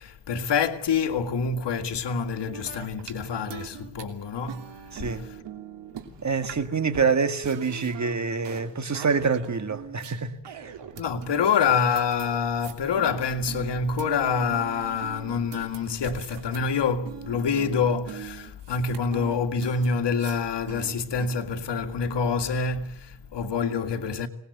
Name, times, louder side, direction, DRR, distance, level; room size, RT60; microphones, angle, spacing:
voice 1, 0.0-4.7 5.0-5.2 11.0-24.3, left 5 dB, 85° left, 2.0 m, -26 dB
sound 1, 2.5-3.2 3.5-4.0 4.5-6.7 6.9-7.0 7.4-8.7 8.9-10.2 10.5-16.8 17.1-20.4 20.7-21.3, right 9 dB, 90° right, 3.1 m, -42 dB
voice 2, 4.9-5.2 6.2-10.7, right 5 dB, 40° right, 2.0 m, -26 dB
25.0 x 19.5 x 8.1 m
cardioid pair, 85°, 41 cm